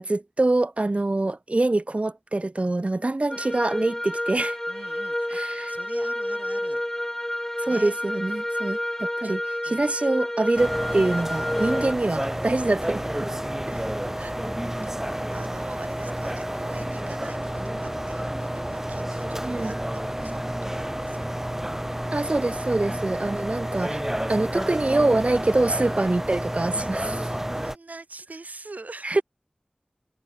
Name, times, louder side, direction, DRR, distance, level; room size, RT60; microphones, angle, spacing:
voice 1, 0.0-4.6 5.3-5.7 7.6-9.4 9.6-13.3 13.7-13.9 19.4-19.7 22.1-24.0 24.3-27.3 29.0-29.2, right 2 dB, 55° right, 1.7 m, -25 dB
sound 1, 3.3-11.9, left 1 dB, 15° left, 1.4 m, -29 dB
voice 2, 4.7-6.8 7.6-8.0 9.2-9.4 9.7-9.9 11.7-11.9 14.2-20.4 20.7-21.5 25.9-26.1 26.9-29.2, right 3 dB, 90° right, 6.8 m, -44 dB
sound 2, 10.6-27.8, right 1 dB, 15° right, 2.3 m, -30 dB
wide cardioid pair, 55°, 3 cm